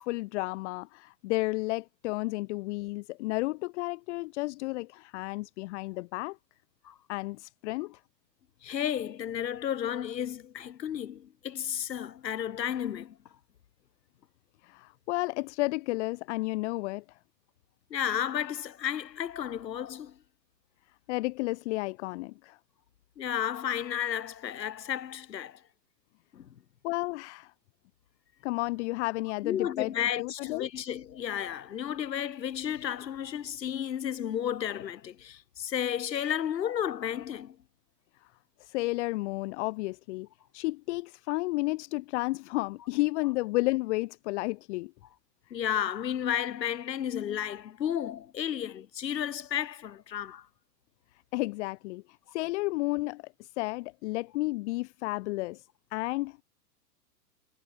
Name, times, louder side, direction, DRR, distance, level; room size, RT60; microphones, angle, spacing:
voice 1, 0.1-6.4 7.1-8.0 14.6-17.0 21.1-22.6 26.8-27.5 28.4-29.9 30.2-30.7 38.6-40.3 40.5-44.9 51.3-52.0 52.3-55.6 55.9-56.4, left 22 dB, 45° left, 1.4 m, -32 dB
voice 2, 8.6-13.2 17.9-20.2 23.2-25.6 26.3-26.5 29.4-37.6 45.5-50.5, left 9 dB, 85° left, 1.5 m, -33 dB
hypercardioid pair, 125°, 49 cm